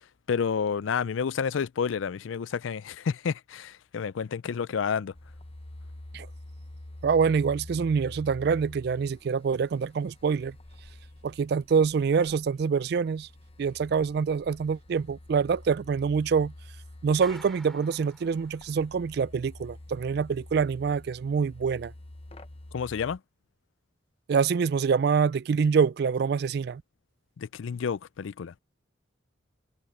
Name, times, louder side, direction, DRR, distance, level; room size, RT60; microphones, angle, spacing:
voice 1, 0.3-5.1 22.7-23.2 27.4-28.5, left 6 dB, 80° left, 0.4 m, -30 dB
sound 1, 5.1-23.2, left 1 dB, 30° left, 0.9 m, -47 dB
voice 2, 7.0-10.6 11.2-13.3 13.6-16.5 17.0-21.9 24.3-26.8, right 6 dB, 55° right, 0.3 m, -25 dB
Clapping, 17.2-19.0, equal, ahead, 2.4 m, -49 dB
head